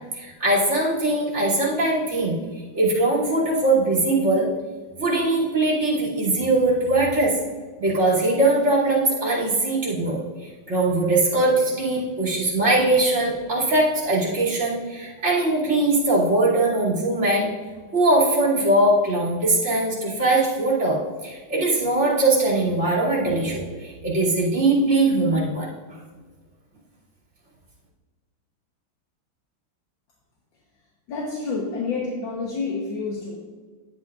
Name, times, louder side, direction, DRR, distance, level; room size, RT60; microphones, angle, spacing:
voice 1, 0.1-2.4 2.7-4.5 5.0-7.4 7.8-17.5 17.9-25.7, right 2 dB, 35° right, -5 dB, 2.8 m, -21 dB
voice 2, 31.1-33.4, left 4 dB, 70° left, -1 dB, 1.7 m, -28 dB
11.5 x 8.1 x 2.4 m, 1.4 s
omnidirectional pair, 2.2 m